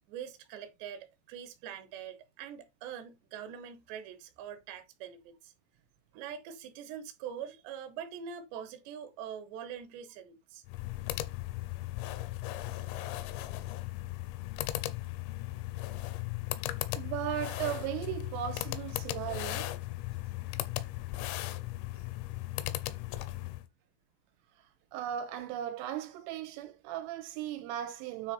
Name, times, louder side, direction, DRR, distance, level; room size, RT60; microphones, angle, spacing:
voice 1, 0.1-5.5 6.1-10.6, right 8 dB, 70° right, 3.2 m, -44 dB
sound 1, 10.7-23.7, left 16 dB, 85° left, 3.3 m, -37 dB
voice 2, 17.0-19.7 24.9-28.3, right 11 dB, 85° right, 3.4 m, -37 dB
9.4 x 4.1 x 4.1 m
omnidirectional pair, 5.8 m